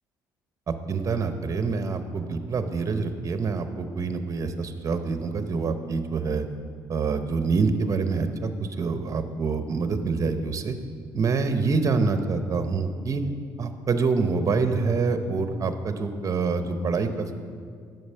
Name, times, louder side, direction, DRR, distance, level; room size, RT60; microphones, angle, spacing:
voice 1, 0.7-6.5 6.9-10.7 11.1-13.2 13.6-17.4, right 4 dB, 40° right, 8 dB, 0.9 m, -26 dB
9.5 x 6.9 x 5.6 m, 2.1 s
cardioid pair, 85°, 8 cm